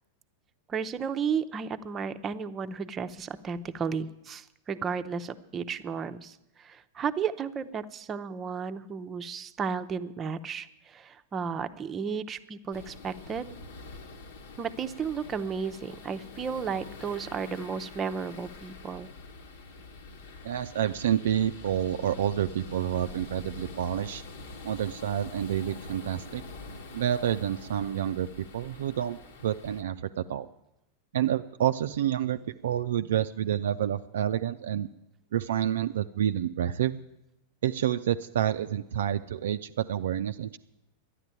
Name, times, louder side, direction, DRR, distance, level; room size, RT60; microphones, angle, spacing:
voice 1, 0.7-13.5 14.6-19.1, right 6 dB, 25° right, 8 dB, 0.7 m, -33 dB
sound 1, 12.7-29.8, left 3 dB, 60° left, 1.3 m, -45 dB
voice 2, 20.4-24.2 24.6-26.4 26.9-30.5 31.1-34.9 35.3-37.0 37.6-40.6, right 10 dB, 60° right, 8 dB, 0.4 m, -29 dB
12.0 x 9.8 x 9.0 m, 0.88 s
figure-of-eight pair, 90°, 0 cm